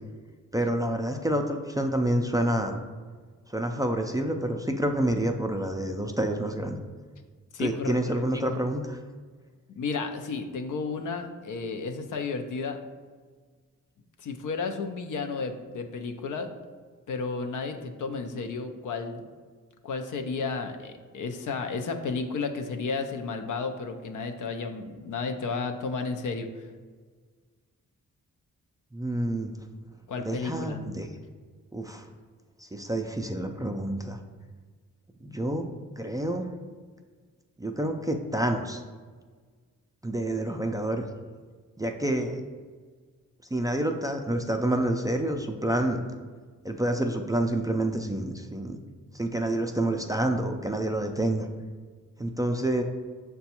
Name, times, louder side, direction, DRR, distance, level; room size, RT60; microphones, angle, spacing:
voice 1, 0.5-2.8 3.5-6.8 7.6-9.0 28.9-29.5 30.2-31.1 31.7-32.1 32.6-34.2 35.2-35.7 36.0-36.5 37.6-38.8 40.0-41.1 41.8-42.4 43.5-46.0 46.6-48.8 49.1-51.5 52.2-52.8, right 1 dB, 10° right, 4 dB, 0.3 m, -28 dB
voice 2, 7.5-8.2 9.8-12.8 14.2-16.5 17.1-19.3 19.8-26.5 30.1-30.8, left 4 dB, 70° left, 6 dB, 0.5 m, -32 dB
6.6 x 2.3 x 2.8 m, 1.5 s
cardioid pair, 50°, 32 cm